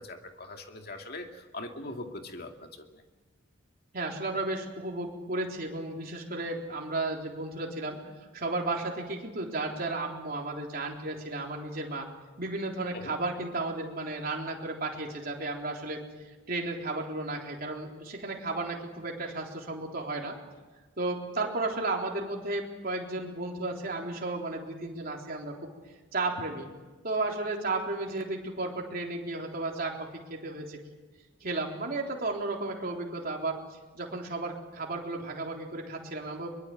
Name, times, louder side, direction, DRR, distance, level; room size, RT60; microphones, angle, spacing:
voice 1, 0.0-3.0 12.9-13.1, left 2 dB, 50° left, 4 dB, 2.4 m, -41 dB
voice 2, 3.9-8.0 8.3-12.1 12.4-16.0 16.5-20.4 21.0-25.5 26.1-26.7 27.0-30.8 31.4-33.6 33.9-36.5, right 2 dB, 50° right, 0 dB, 3.7 m, -33 dB
23.0 x 23.0 x 7.9 m, 1.2 s
head